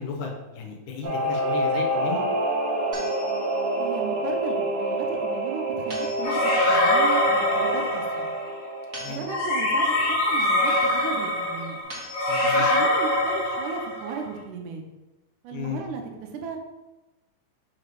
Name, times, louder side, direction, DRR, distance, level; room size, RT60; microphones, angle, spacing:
voice 1, 0.0-2.3 9.0-9.2 12.3-12.9 15.5-15.8, left 5 dB, 85° left, 2 dB, 2.5 m, -34 dB
Singing / Musical instrument, 1.0-11.1 11.4-11.5, right 1 dB, 55° right, 1.9 m, -28 dB
sound 1, 2.9-3.8 5.9-6.8 8.9-9.8 11.9-12.8, left 1 dB, 35° right, 1.5 m, -42 dB
voice 2, 3.8-8.3 9.1-11.8 12.4-14.8 15.4-16.0 16.3-16.6, right 5 dB, 85° right, 3 dB, 2.3 m, -35 dB
sound 2, 6.2-8.5 9.3-14.2, left 1 dB, 60° left, 1.5 m, -23 dB
5.8 x 3.1 x 5.2 m, 1.1 s
omnidirectional pair, 3.6 m